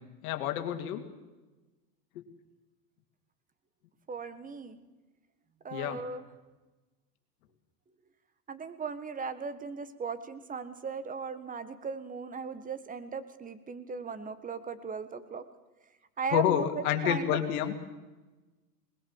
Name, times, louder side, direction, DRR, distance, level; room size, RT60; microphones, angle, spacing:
voice 1, 0.2-1.0 5.7-6.0 16.3-17.7, left 11 dB, 60° left, 6 dB, 2.7 m, -28 dB
voice 2, 4.1-4.8 5.6-6.2 8.5-15.4 16.2-17.4, right 5 dB, 15° right, 12 dB, 1.6 m, -37 dB
21.0 x 20.0 x 7.4 m, 1.2 s
hypercardioid pair, 105°, 49 cm